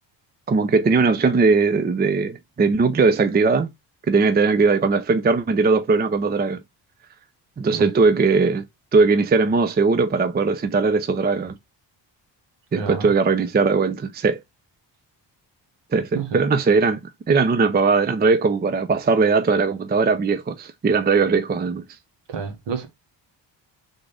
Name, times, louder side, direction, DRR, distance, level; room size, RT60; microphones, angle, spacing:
voice 1, 0.5-3.7 4.1-6.6 7.6-8.6 8.9-11.5 12.7-14.4 15.9-17.0 17.3-21.8, right 4 dB, 20° right, 0.5 m, -19 dB
voice 2, 12.7-13.1 16.1-16.4 22.3-22.9, right 6 dB, 70° right, 1.5 m, -29 dB
3.8 x 3.7 x 3.3 m
cardioid pair, 85°, 44 cm